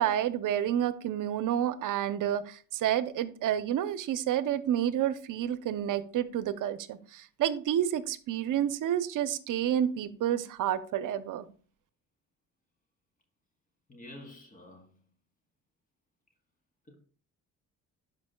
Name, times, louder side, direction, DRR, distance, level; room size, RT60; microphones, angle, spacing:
voice 1, 0.0-11.5, right 10 dB, 65° right, 0.7 m, -29 dB
voice 2, 13.9-14.9 16.9-17.0, left 1 dB, 25° left, 2.5 m, -48 dB
11.0 x 5.2 x 2.2 m
cardioid pair, 80°, 34 cm